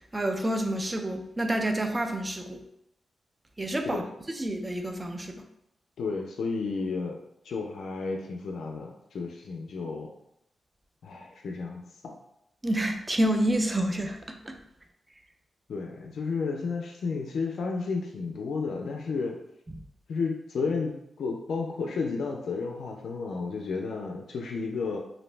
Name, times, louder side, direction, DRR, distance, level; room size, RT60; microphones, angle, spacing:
voice 1, 0.1-2.6 3.6-4.0 4.3-5.4 12.6-14.6, right 1 dB, 20° right, 5 dB, 0.3 m, -28 dB
voice 2, 6.0-7.2 7.4-10.1 11.0-12.2 15.7-19.4 20.1-20.9 21.2-25.0, left 4 dB, 80° left, 1 dB, 0.3 m, -32 dB
2.5 x 2.0 x 3.1 m, 0.78 s
wide cardioid pair, 110°, 0 cm